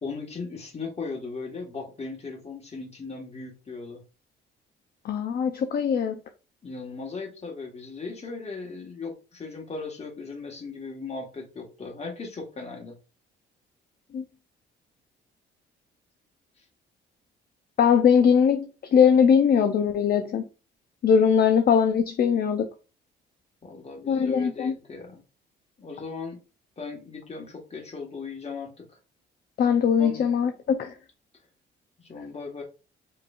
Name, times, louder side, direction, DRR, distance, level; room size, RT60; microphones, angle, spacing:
voice 1, 0.0-4.0 6.6-13.0 23.6-25.2 25.8-26.4 26.8-28.8 30.0-30.3 32.0-32.6, left 4 dB, 30° left, 1.5 m, -37 dB
voice 2, 5.0-6.1 14.1-14.2 17.8-18.7 18.9-20.4 21.0-22.7 24.1-24.7 29.6-30.9, left 7 dB, 50° left, 0.5 m, -21 dB
4.8 x 3.1 x 2.4 m
cardioid pair, 90°, 20 cm